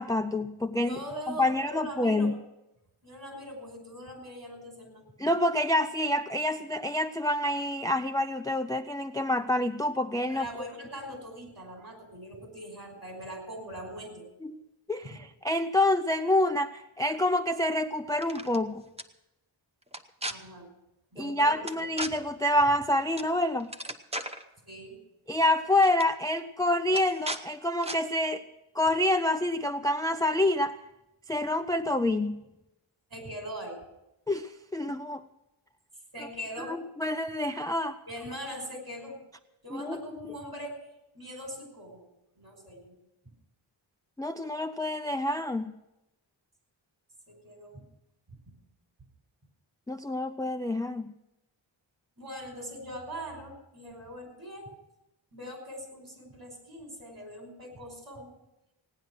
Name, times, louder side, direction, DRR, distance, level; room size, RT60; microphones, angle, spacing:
voice 1, 0.0-1.0 1.3-2.3 5.2-10.5 14.4-14.6 14.9-15.2 15.4-18.8 21.2-23.7 25.3-28.4 28.7-30.8 31.3-32.4 34.3-35.2 36.6-38.0 39.7-40.0 44.2-45.7 49.9-51.1, left 1 dB, 10° left, 9 dB, 0.4 m, -27 dB
voice 2, 0.8-2.3 3.0-5.0 10.3-14.2 15.0-15.2 20.3-20.7 21.1-22.3 24.7-25.0 33.1-33.8 36.1-36.8 38.1-39.2 39.6-40.8 41.1-42.0 42.4-43.0 47.3-47.8 52.2-54.7 55.3-58.3, equal, 45° right, 2 dB, 5.3 m, -41 dB
sound 1, 18.1-18.6 19.0-19.1 19.9-20.3 21.7-22.1 23.2-23.3 23.6-24.4 25.4-25.5 25.8-26.1 26.9-27.4 27.8-28.0, right 1 dB, 15° right, 0.8 m, -36 dB
17.5 x 9.8 x 6.3 m, 0.92 s
wide cardioid pair, 95°, 48 cm